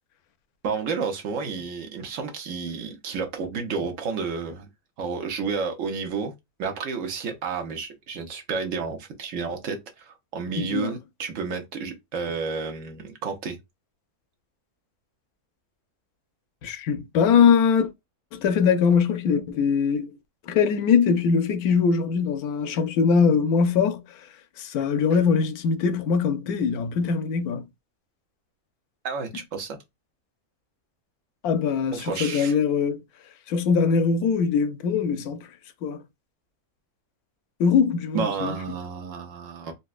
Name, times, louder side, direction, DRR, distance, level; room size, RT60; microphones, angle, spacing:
voice 1, 0.6-4.7 5.0-6.3 6.6-13.6 29.0-29.8 31.9-32.5 38.1-39.7, right 5 dB, 65° right, 1.0 m, -31 dB
voice 2, 10.6-10.9 16.6-17.9 18.3-20.2 20.5-24.0 24.6-27.6 31.4-33.0 33.5-35.5 35.8-36.0 37.6-38.6, left 6 dB, 90° left, 1.1 m, -22 dB
4.1 x 2.2 x 2.3 m
omnidirectional pair, 1.5 m